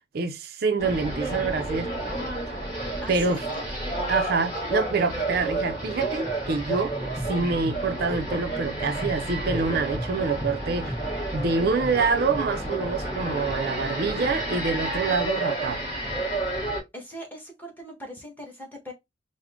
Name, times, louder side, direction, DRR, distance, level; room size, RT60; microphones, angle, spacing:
voice 1, 0.1-1.9 3.1-3.4 4.1-6.9 7.2-11.0 11.3-15.8, right 4 dB, 55° right, 0.5 m, -26 dB
sound 1, 0.8-16.8, right 1 dB, 25° left, 3.0 m, -30 dB
voice 2, 3.0-3.6 16.9-18.9, equal, 10° left, 1.3 m, -40 dB
4.9 x 2.1 x 3.5 m
head